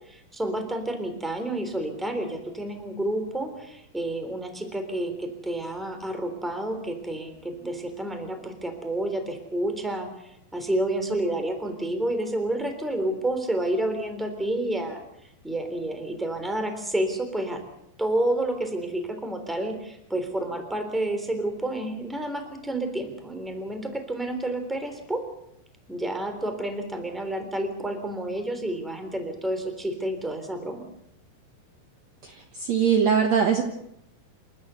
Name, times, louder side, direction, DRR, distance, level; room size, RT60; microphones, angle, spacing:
voice 1, 0.1-10.1 10.5-15.0 15.4-17.6 18.0-25.2 25.9-30.9, right 1 dB, ahead, 7 dB, 2.5 m, -29 dB
voice 2, 32.7-33.6, right 7 dB, 75° right, 5 dB, 1.6 m, -20 dB
28.0 x 13.5 x 8.1 m, 0.78 s
omnidirectional pair, 5.2 m